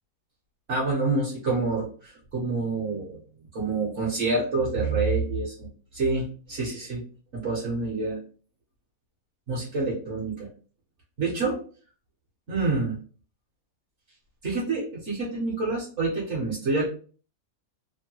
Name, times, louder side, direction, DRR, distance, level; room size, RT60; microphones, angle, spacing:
voice 1, 0.7-3.2 3.5-7.0 7.3-8.2 9.5-10.5 11.2-11.6 12.5-13.0 14.4-16.9, right 3 dB, 60° right, -6 dB, 1.3 m, -27 dB
3.1 x 2.1 x 2.9 m, 0.40 s
omnidirectional pair, 1.5 m